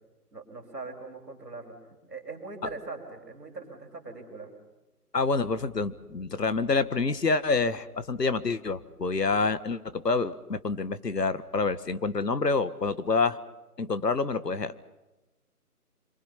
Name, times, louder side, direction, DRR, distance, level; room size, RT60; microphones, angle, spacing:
voice 1, 0.3-1.7 2.1-4.5, right 3 dB, ahead, -23 dB, 1.7 m, -41 dB
voice 2, 5.1-13.4 13.8-14.8, left 4 dB, 85° left, 13 dB, 1.7 m, -27 dB
26.5 x 24.0 x 5.8 m, 1.1 s
figure-of-eight pair, 175°, 47 cm